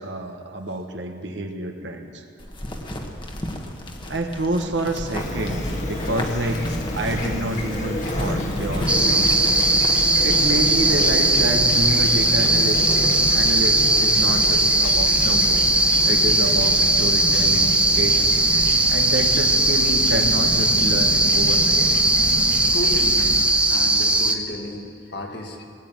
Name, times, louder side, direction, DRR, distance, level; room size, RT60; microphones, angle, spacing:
voice 1, 0.0-2.2 4.0-6.7 6.9-9.7 10.2-12.8 13.3-15.8 16.0-18.3 18.9-21.8, right 1 dB, 70° right, 4 dB, 1.2 m, -28 dB
sound 1, 2.4-11.4, left 1 dB, 25° left, 1.2 m, -34 dB
Fowl / Chirp tweet, 5.2-23.4, left 1 dB, 40° left, 1.5 m, -29 dB
sound 2, 8.9-24.3, right 2 dB, 5° right, 0.7 m, -19 dB
voice 2, 12.4-12.7 22.7-23.3 23.7-25.6, left 1 dB, 60° left, 2 dB, 1.8 m, -32 dB
19.0 x 8.4 x 8.8 m, 2.6 s
head